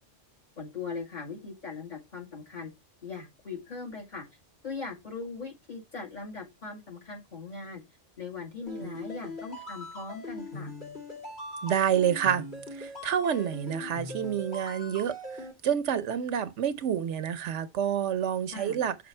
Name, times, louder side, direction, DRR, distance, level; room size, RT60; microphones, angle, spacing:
voice 1, 0.6-2.7 3.0-4.2 4.6-7.8 8.2-10.7 18.5-18.8, left 4 dB, 40° left, 2.2 m, -40 dB
sound 1, 8.7-15.5, left 1 dB, 65° left, 2.8 m, -41 dB
voice 2, 11.6-15.1 15.6-19.0, right 9 dB, 80° right, 1.0 m, -28 dB
6.0 x 5.0 x 4.3 m
omnidirectional pair, 1.2 m